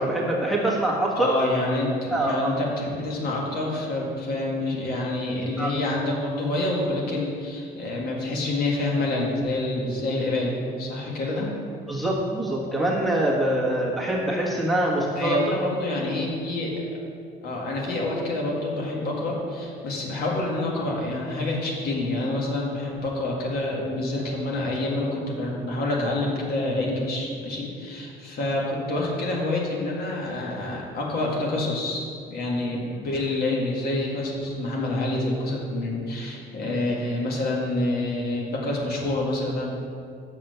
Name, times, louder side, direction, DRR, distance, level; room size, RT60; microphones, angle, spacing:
voice 1, 0.0-1.3 2.1-2.6 5.6-5.7 11.9-15.4 36.7-36.8, right 1 dB, ahead, -3 dB, 1.4 m, -24 dB
voice 2, 1.2-11.5 15.2-16.7 17.4-39.7, left 2 dB, 65° left, -3 dB, 2.0 m, -27 dB
6.5 x 5.8 x 6.7 m, 2.3 s
cardioid pair, 110°, 17 cm